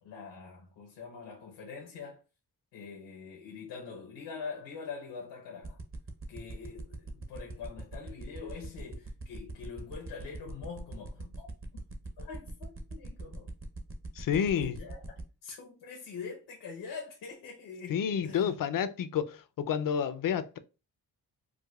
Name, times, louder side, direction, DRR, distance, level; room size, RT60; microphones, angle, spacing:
voice 1, 0.0-2.2 2.7-5.8 6.3-11.5 12.2-13.5 14.3-15.0 15.4-18.5, left 5 dB, 90° left, 0.9 m, -44 dB
sound 1, 5.6-15.2, right 3 dB, 35° right, 0.8 m, -42 dB
voice 2, 14.2-14.8 17.9-20.6, left 8 dB, 55° left, 0.5 m, -30 dB
4.7 x 2.2 x 2.3 m
cardioid pair, 70°, 39 cm